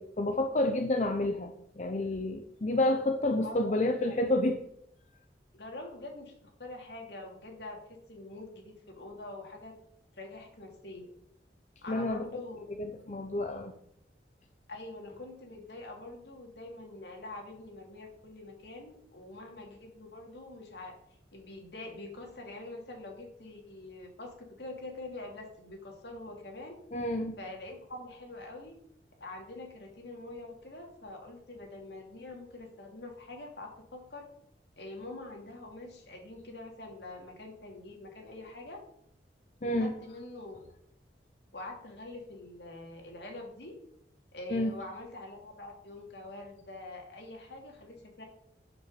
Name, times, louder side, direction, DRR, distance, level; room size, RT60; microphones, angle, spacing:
voice 1, 0.0-1.5 1.8-4.6 11.9-12.4 12.8-13.7 26.9-27.4 39.6-39.9 44.5-44.7, left 1 dB, 40° left, 4 dB, 0.8 m, -29 dB
voice 2, 3.3-4.2 5.5-6.3 6.6-9.7 10.2-11.1 11.8-12.6 14.7-20.9 21.3-26.8 27.4-28.7 29.2-34.3 34.8-38.8 39.7-40.6 41.5-43.7 44.3-48.2, left 2 dB, 75° left, 1 dB, 2.7 m, -45 dB
8.8 x 6.3 x 6.7 m, 0.74 s
head